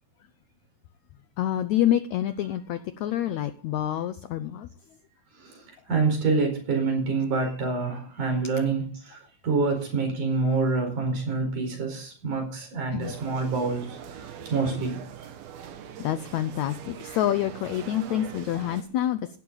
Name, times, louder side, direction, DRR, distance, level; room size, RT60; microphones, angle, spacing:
voice 1, 1.4-4.7 12.9-13.1 16.0-19.4, left 12 dB, 85° left, 10 dB, 1.6 m, -27 dB
voice 2, 5.3-15.3, right 4 dB, 60° right, 4 dB, 6.0 m, -27 dB
sound 1, 13.0-18.8, right 9 dB, 85° right, 3.4 m, -42 dB
15.5 x 12.0 x 4.0 m, 0.43 s
omnidirectional pair, 4.1 m